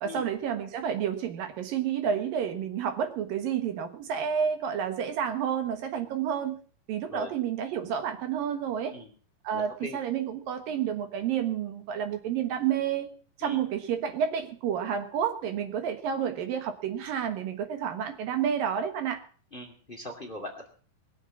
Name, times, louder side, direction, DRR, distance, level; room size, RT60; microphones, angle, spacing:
voice 1, 0.0-6.6 6.9-9.0 9.4-13.1 13.4-19.2, right 8 dB, 70° right, 8 dB, 3.0 m, -30 dB
voice 2, 9.5-10.0 13.4-13.6 19.5-20.7, left 1 dB, 15° left, 3 dB, 2.6 m, -40 dB
21.0 x 7.8 x 7.1 m, 0.43 s
omnidirectional pair, 4.3 m